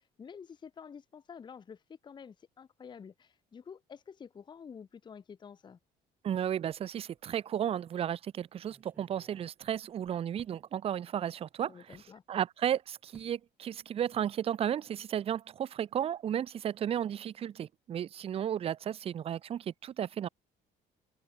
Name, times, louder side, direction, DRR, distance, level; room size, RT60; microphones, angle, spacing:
voice 1, 0.0-5.8 11.7-12.2, left 6 dB, 25° left, 0.6 m, -49 dB
voice 2, 6.2-12.0 12.3-20.3, right 10 dB, 35° right, 0.4 m, -34 dB
sound 1, 7.2-7.3 7.7-7.8 8.6-10.6 11.9-12.2 13.1-13.4 13.7-14.1 14.3-14.5, right 2 dB, 10° right, 5.0 m, -61 dB
cardioid pair, 110°, 17 cm